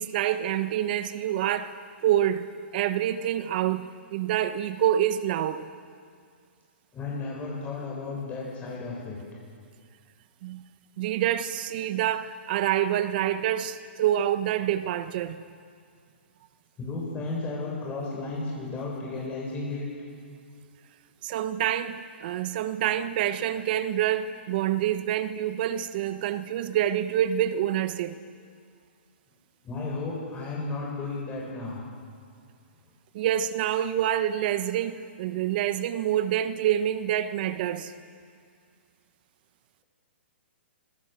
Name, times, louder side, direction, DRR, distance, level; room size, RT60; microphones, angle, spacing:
voice 1, 0.0-1.7 2.0-2.5 2.7-5.7 10.4-10.6 11.0-15.4 21.2-28.2 33.1-37.9, right 11 dB, 50° right, 1.3 m, -27 dB
voice 2, 6.9-9.2 16.8-19.8 29.6-31.8, left 3 dB, 20° left, 7.6 m, -33 dB
26.5 x 25.5 x 7.7 m
hypercardioid pair, 140°, 7 cm